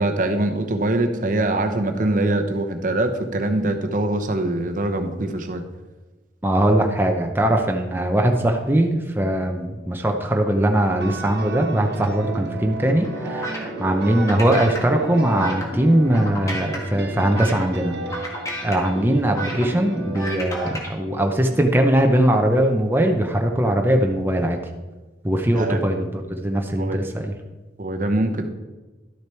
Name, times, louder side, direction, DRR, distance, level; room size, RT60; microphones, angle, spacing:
voice 1, 0.0-5.6 25.5-25.8 26.8-27.0 27.8-28.5, right 2 dB, 45° right, 6 dB, 0.8 m, -23 dB
voice 2, 6.4-18.0 18.6-24.6 25.2-27.3, right 1 dB, 10° right, 3 dB, 0.6 m, -20 dB
sound 1, 11.0-20.8, right 3 dB, 65° right, 1.1 m, -36 dB
sound 2, 13.0-20.9, right 1 dB, 20° left, 1.7 m, -31 dB
12.0 x 6.5 x 4.4 m, 1.2 s
head